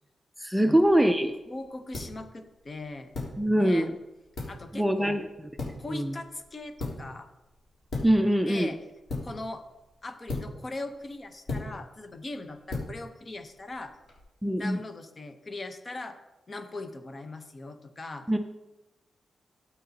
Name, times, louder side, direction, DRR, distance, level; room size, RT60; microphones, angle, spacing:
voice 1, 0.4-1.3 3.4-4.0 4.7-5.3 5.9-6.2 8.0-8.7 14.4-14.8 18.3-18.4, equal, 5° right, 7 dB, 0.5 m, -23 dB
sound 1, 0.7-14.2, left 2 dB, 60° left, 3.5 m, -40 dB
voice 2, 1.5-3.1 3.6-3.9 4.5-5.2 5.8-7.3 8.5-8.8 9.2-9.6 10.0-14.0 14.6-16.2 16.5-18.3, left 2 dB, 35° left, 7 dB, 0.9 m, -40 dB
13.0 x 8.4 x 2.9 m, 1.0 s
cardioid pair, 95°, 0 cm